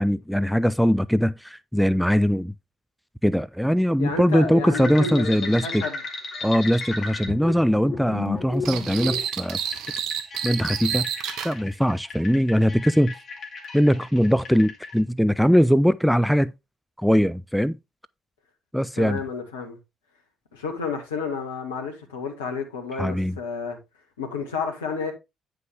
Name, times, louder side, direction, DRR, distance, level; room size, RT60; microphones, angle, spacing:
voice 1, 0.0-2.5 3.2-5.8 6.4-9.6 10.4-11.1 11.4-13.1 13.7-16.5 17.0-17.8 18.7-19.2 23.0-23.4, equal, ahead, 0.4 m, -21 dB
voice 2, 4.0-6.0 19.0-19.8 20.5-23.8 24.2-25.1, left 5 dB, 75° left, 1.6 m, -31 dB
sound 1, 4.7-14.9, left 4 dB, 50° left, 2.3 m, -35 dB
sound 2, 8.6-11.5, right 9 dB, 60° right, 0.8 m, -29 dB
9.3 x 5.7 x 3.4 m
figure-of-eight pair, 45°, 0 cm